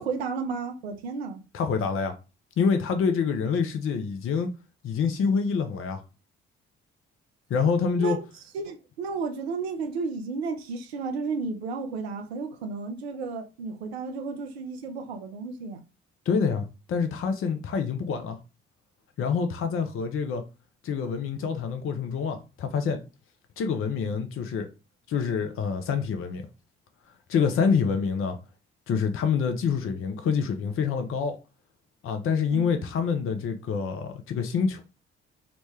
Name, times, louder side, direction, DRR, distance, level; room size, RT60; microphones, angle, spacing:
voice 1, 0.0-1.4 8.0-8.2 8.5-15.8 32.5-32.7, right 4 dB, 85° right, 0.5 m, -33 dB
voice 2, 1.5-2.1 2.6-4.5 4.8-6.0 7.5-8.2 16.3-18.4 19.2-20.4 20.8-23.0 23.6-24.7 25.1-26.5 27.3-28.4 28.9-31.4 32.0-34.8, left 6 dB, 45° left, 0.5 m, -26 dB
3.0 x 2.1 x 3.2 m
hypercardioid pair, 45°, 30 cm